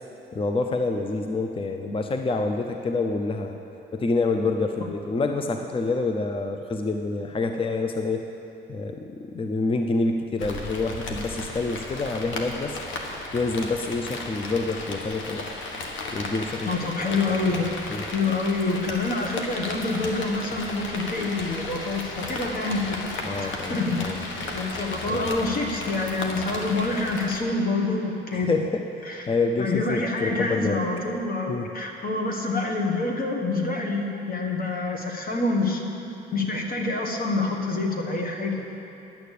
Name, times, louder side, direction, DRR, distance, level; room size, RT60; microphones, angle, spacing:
voice 1, 0.3-3.6 3.9-8.3 8.7-12.8 13.3-15.5 16.1-16.7 17.0-17.4 17.9-18.0 23.2-24.2 25.1-25.3 28.5-28.9 29.3-30.8 31.5-31.7, left 3 dB, 25° left, 5 dB, 0.6 m, -27 dB
Rain, 10.4-27.4, left 2 dB, 75° left, 1.3 m, -34 dB
voice 2, 16.6-17.7 18.1-24.1 24.5-28.5 29.0-35.8 36.3-38.6, left 3 dB, 45° left, 1 dB, 1.6 m, -27 dB
10.5 x 6.7 x 8.3 m, 2.8 s
cardioid pair, 90°, 20 cm